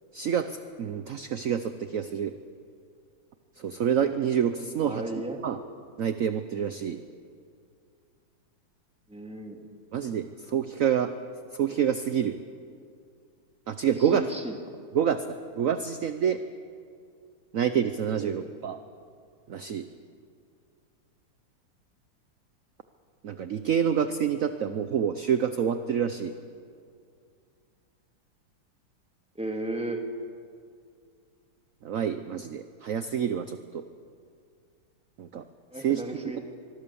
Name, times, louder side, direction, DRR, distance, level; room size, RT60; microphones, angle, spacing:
voice 1, 0.1-2.3 3.6-5.0 5.4-5.6 6.0-7.0 9.9-11.1 11.5-12.4 13.7-14.2 14.9-15.2 15.5-16.4 17.5-18.8 19.5-19.9 23.2-26.3 31.8-33.8 35.2-35.4 35.7-36.4, right 8 dB, 60° right, 9 dB, 0.9 m, -27 dB
voice 2, 4.8-5.4 9.1-9.6 13.9-14.5 18.2-18.5 29.4-30.0 35.7-36.4, right 1 dB, 5° right, 2 dB, 2.1 m, -35 dB
25.0 x 21.5 x 7.0 m, 2.3 s
omnidirectional pair, 2.3 m